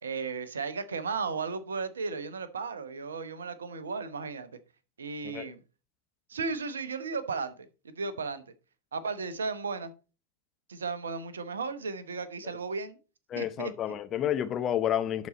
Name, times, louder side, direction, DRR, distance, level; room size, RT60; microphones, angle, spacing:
voice 1, 0.0-4.5 5.0-5.6 6.3-7.5 8.0-8.4 8.9-9.9 10.7-13.0 13.3-13.7, right 4 dB, 70° right, 0.9 m, -35 dB
voice 2, 13.3-15.3, left 10 dB, 30° left, 0.7 m, -30 dB
11.5 x 4.2 x 4.1 m
figure-of-eight pair, 90°, 0 cm